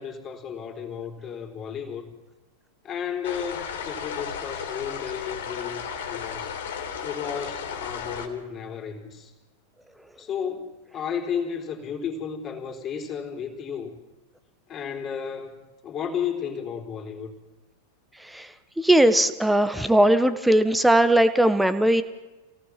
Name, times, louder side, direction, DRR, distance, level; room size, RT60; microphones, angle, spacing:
voice 1, 0.0-2.1 2.8-6.6 7.0-9.3 10.2-13.9 14.7-17.3, left 7 dB, 30° left, 3 dB, 4.0 m, -33 dB
little stream, 3.2-8.3, left 7 dB, 60° left, 3.3 m, -34 dB
voice 2, 18.8-22.0, right 1 dB, 5° right, 11 dB, 1.4 m, -19 dB
28.0 x 18.5 x 6.0 m, 1.1 s
figure-of-eight pair, 90°, 0 cm